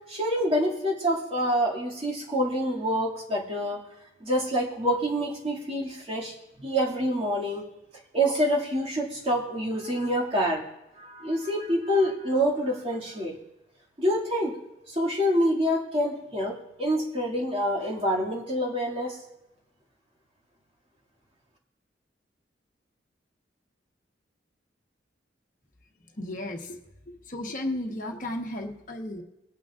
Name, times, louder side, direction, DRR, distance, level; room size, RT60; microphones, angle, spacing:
voice 1, 0.1-3.8 4.2-7.6 8.1-10.6 11.0-13.3 14.0-14.5 14.9-19.2, equal, 30° right, -4 dB, 2.2 m, -26 dB
voice 2, 26.2-26.8 27.3-29.2, left 1 dB, 45° left, 1 dB, 1.1 m, -34 dB
21.5 x 9.1 x 2.5 m, 0.93 s
head